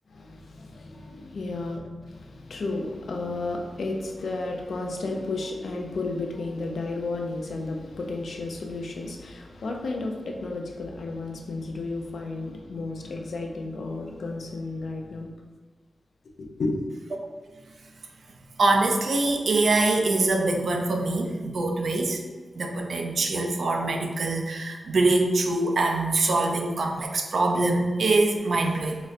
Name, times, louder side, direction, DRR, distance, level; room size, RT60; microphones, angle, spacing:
voice 1, 0.1-15.3 16.4-16.8, left 2 dB, 80° left, 2 dB, 0.4 m, -33 dB
voice 2, 18.6-22.2 22.6-29.0, right 2 dB, 70° right, 3 dB, 0.4 m, -24 dB
3.9 x 2.1 x 2.4 m, 1.4 s
wide cardioid pair, 80°, 0 cm